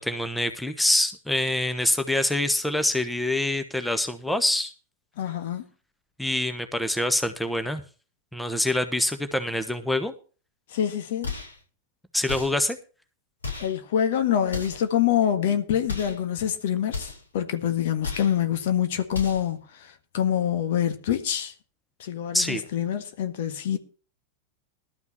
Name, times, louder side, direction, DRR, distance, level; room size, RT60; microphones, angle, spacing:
voice 1, 0.0-4.7 6.2-7.8 8.3-10.1 12.1-12.8 22.3-22.6, left 1 dB, 5° left, 1.2 m, -25 dB
voice 2, 5.2-5.7 10.7-11.3 13.6-21.5 22.0-23.8, left 9 dB, 55° left, 1.6 m, -26 dB
sound 1, 11.2-11.6 12.3-12.7 13.4-13.8 14.5-14.9 15.8-16.2 16.9-17.3 18.0-18.4 19.1-19.5, left 4 dB, 75° left, 6.7 m, -34 dB
12.5 x 6.0 x 7.2 m
figure-of-eight pair, 90°, 0 cm